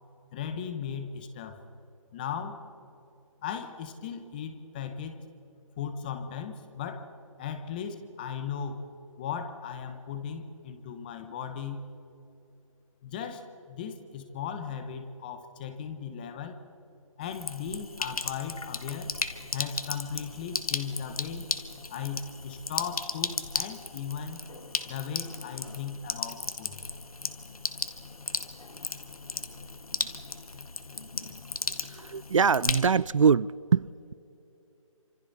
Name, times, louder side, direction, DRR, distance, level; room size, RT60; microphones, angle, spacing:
voice 1, 0.3-1.6 2.1-2.6 3.4-5.3 5.8-7.1 7.4-8.9 9.2-11.9 13.0-16.6 17.2-19.2 19.5-21.5 21.9-24.4 24.9-26.8, left 7 dB, 15° left, 1.1 m, -37 dB
Sink (filling or washing), 17.2-33.2, left 3 dB, 85° left, 1.9 m, -36 dB
voice 2, 31.9-34.1, right 6 dB, 65° right, 0.5 m, -24 dB
29.0 x 26.5 x 4.2 m
figure-of-eight pair, 165°, 18 cm